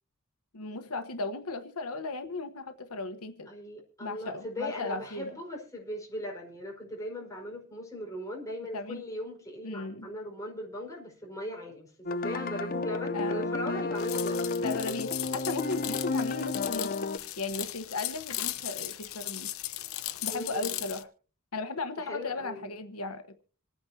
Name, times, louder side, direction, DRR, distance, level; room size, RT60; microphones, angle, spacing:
voice 1, 0.5-3.5 4.0-5.4 8.7-9.0 9.6-10.1 13.1-13.5 14.6-17.0 17.4-19.5 20.2-21.1 21.5-23.4, left 3 dB, 90° left, 1.2 m, -36 dB
voice 2, 3.5-14.6 20.3-20.8 22.0-22.7, left 1 dB, 15° left, 5.1 m, -39 dB
sound 1, 12.1-17.2, left 3 dB, 40° left, 0.6 m, -32 dB
sound 2, 14.0-21.0, left 14 dB, 65° left, 1.0 m, -37 dB
26.5 x 9.6 x 2.8 m
head